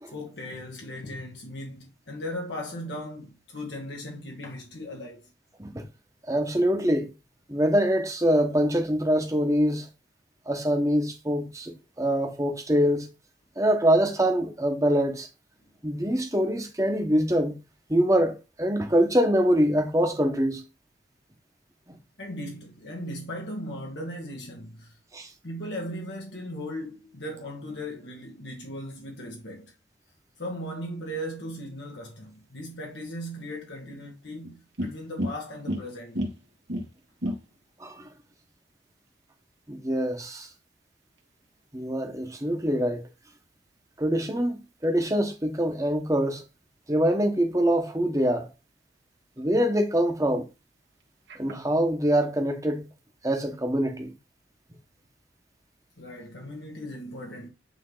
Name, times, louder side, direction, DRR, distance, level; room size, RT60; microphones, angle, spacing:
voice 1, 0.1-5.3 22.2-25.0 25.4-29.7 30.4-36.3 56.0-57.5, equal, 65° left, 1.5 m, -37 dB
voice 2, 6.3-7.1 7.5-9.9 10.5-13.1 13.6-15.3 15.8-17.6 17.9-20.6 25.1-25.3 37.8-38.1 39.7-40.5 41.7-43.1 44.0-46.4 46.9-48.5 49.4-50.5 51.3-52.9 53.2-54.1, equal, 15° right, 1.2 m, -24 dB
sound 1, 32.0-51.8, equal, 70° right, 1.6 m, -41 dB
8.8 x 3.6 x 3.9 m
head